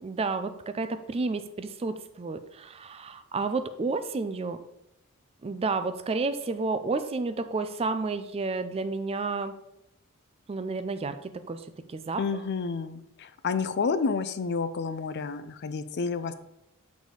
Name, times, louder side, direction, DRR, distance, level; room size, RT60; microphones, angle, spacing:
voice 1, 0.0-4.6 5.4-9.5 10.5-12.2, right 3 dB, 25° right, 10 dB, 0.4 m, -31 dB
voice 2, 12.2-16.3, left 4 dB, 50° left, 12 dB, 0.4 m, -30 dB
6.7 x 4.1 x 4.8 m, 0.84 s
head